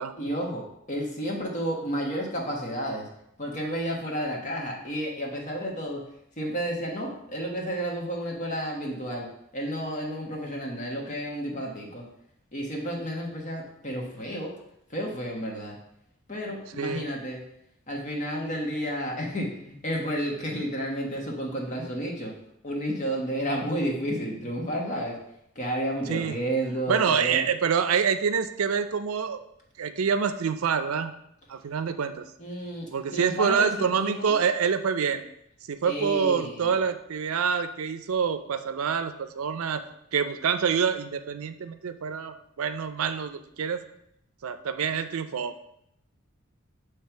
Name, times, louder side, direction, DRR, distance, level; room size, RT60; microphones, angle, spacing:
voice 1, 0.2-3.1 3.4-6.0 6.4-9.3 9.5-12.0 12.5-14.5 14.9-15.7 16.3-17.4 17.9-22.4 22.6-25.1 25.5-27.5 32.4-34.4 35.8-36.8, equal, 35° left, -1 dB, 1.3 m, -31 dB
voice 2, 16.8-17.1 26.1-26.4 26.9-29.4 29.8-31.1 31.5-32.2 32.9-35.2 35.7-39.8 40.1-43.8 44.4-45.6, right 6 dB, 85° right, 9 dB, 0.5 m, -26 dB
7.5 x 3.3 x 4.4 m, 0.77 s
head